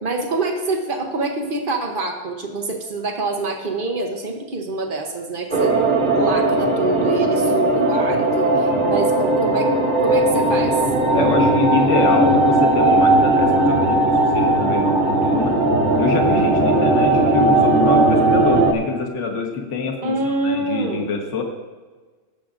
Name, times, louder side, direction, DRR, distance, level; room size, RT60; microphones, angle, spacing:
voice 1, 0.0-5.7 6.0-9.7 10.0-10.8 11.1-11.4 20.0-21.1, right 3 dB, 55° right, 3 dB, 0.5 m, -25 dB
sound 1, 5.5-18.7, right 2 dB, 30° right, 1.0 m, -17 dB
voice 2, 11.1-15.6 16.0-21.4, left 3 dB, 40° left, 2 dB, 1.3 m, -25 dB
18.0 x 7.5 x 2.5 m, 1.4 s
omnidirectional pair, 2.2 m